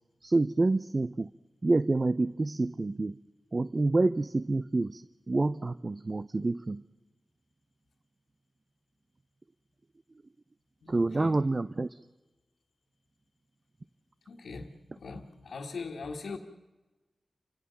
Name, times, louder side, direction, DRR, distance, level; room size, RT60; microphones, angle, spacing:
voice 1, 0.2-1.3 1.6-3.2 3.5-6.8 10.9-12.0, right 2 dB, 45° right, 15 dB, 0.6 m, -28 dB
voice 2, 10.8-11.4 14.3-16.4, left 4 dB, 90° left, -2 dB, 1.7 m, -41 dB
29.5 x 16.5 x 7.0 m, 1.1 s
cardioid pair, 45°, 0 cm